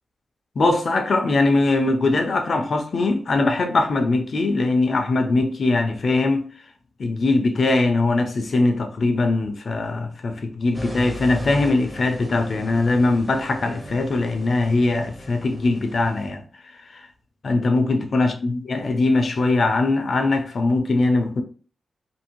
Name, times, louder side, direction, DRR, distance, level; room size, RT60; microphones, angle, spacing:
voice 1, 0.6-6.5 7.0-16.4 16.9-17.0 17.4-21.4, left 2 dB, 50° left, 0.4 m, -21 dB
sound 1, 10.7-16.3, right 1 dB, 5° right, 0.6 m, -36 dB
2.7 x 2.6 x 2.9 m
wide cardioid pair, 160°, 0 cm